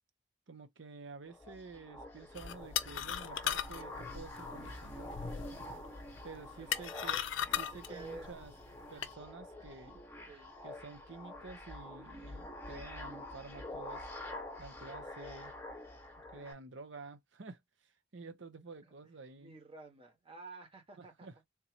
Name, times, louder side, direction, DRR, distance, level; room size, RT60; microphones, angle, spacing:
voice 1, 0.5-5.1 6.2-7.2 7.6-8.5 8.9-10.0 10.6-14.1 14.6-15.5 16.3-19.6 21.0-21.4, right 4 dB, 70° right, 0.8 m, -50 dB
sound 1, 1.2-16.5, left 1 dB, 10° left, 1.1 m, -47 dB
sound 2, 2.4-9.1, left 9 dB, 75° left, 0.5 m, -39 dB
voice 2, 6.6-7.3 7.9-8.4 10.3-10.5 19.4-21.3, right 3 dB, 30° right, 1.4 m, -51 dB
3.7 x 2.8 x 2.8 m
head